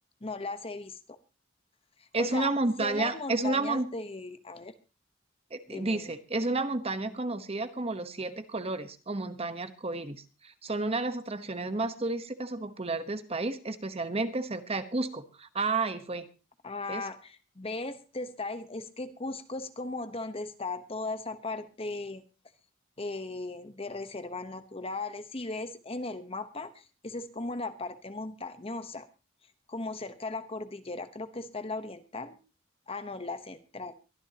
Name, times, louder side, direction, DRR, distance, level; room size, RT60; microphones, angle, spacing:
voice 1, 0.2-1.2 2.0-2.5 2.8-4.7 5.7-6.1 16.6-22.2 23.0-29.1 29.7-32.4 32.9-33.9, left 3 dB, 30° left, 10 dB, 1.0 m, -37 dB
voice 2, 2.1-3.9 5.5-16.3 16.9-17.0, right 2 dB, 30° right, 10 dB, 1.0 m, -31 dB
23.0 x 13.5 x 2.9 m, 0.32 s
head